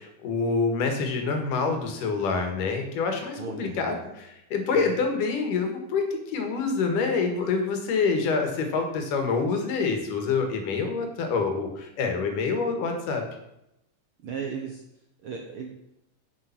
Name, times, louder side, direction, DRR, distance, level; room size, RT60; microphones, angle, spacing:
voice 1, 0.0-13.2, left 4 dB, 75° left, 4 dB, 3.1 m, -26 dB
voice 2, 3.4-4.0 4.7-4.8 14.2-14.8 15.2-15.7, right 5 dB, 80° right, 3 dB, 1.2 m, -35 dB
9.0 x 6.9 x 5.8 m, 0.84 s
omnidirectional pair, 3.7 m